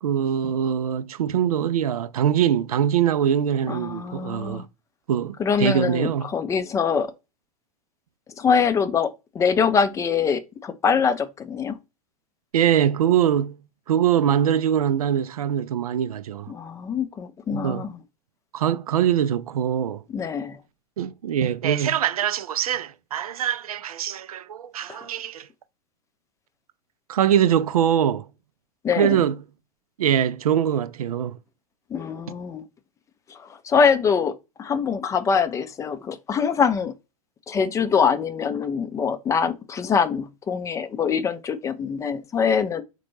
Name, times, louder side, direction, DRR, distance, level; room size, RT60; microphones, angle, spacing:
voice 1, 0.0-4.6 5.1-6.3 12.5-13.6 13.9-16.5 17.5-17.9 18.5-20.0 21.0-25.5 27.1-28.3 29.0-29.4 30.0-31.3, right 9 dB, 70° right, 0.4 m, -23 dB
voice 2, 3.7-4.6 5.4-7.1 8.4-11.8 16.5-18.0 20.1-20.6 24.9-25.1 28.8-29.2 31.9-32.6 33.3-36.9 37.5-42.8, left 6 dB, 15° left, 0.4 m, -24 dB
4.1 x 2.2 x 3.0 m
figure-of-eight pair, 90°, 19 cm